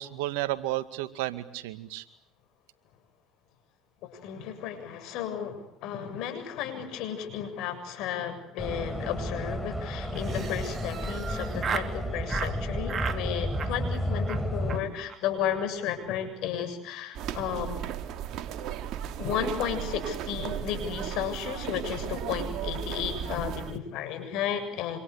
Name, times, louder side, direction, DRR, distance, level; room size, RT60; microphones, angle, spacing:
voice 1, 0.0-2.0, right 15 dB, 80° right, 12 dB, 2.1 m, -32 dB
voice 2, 4.0-17.8 19.2-25.0, left 9 dB, 65° left, 8 dB, 7.4 m, -33 dB
sound 1, 8.6-14.8, equal, ahead, 5.8 m, -32 dB
Laughter, 10.1-11.9 12.3-12.5 12.9-13.2 13.5-14.0 14.3-14.4 14.7-14.8 15.1-15.2 15.4-15.6 15.8-16.2, right 7 dB, 40° right, 3.1 m, -35 dB
sound 2, 17.1-23.8, right 10 dB, 60° right, 2.5 m, -35 dB
27.0 x 26.5 x 8.3 m, 0.74 s
hypercardioid pair, 80°, 0 cm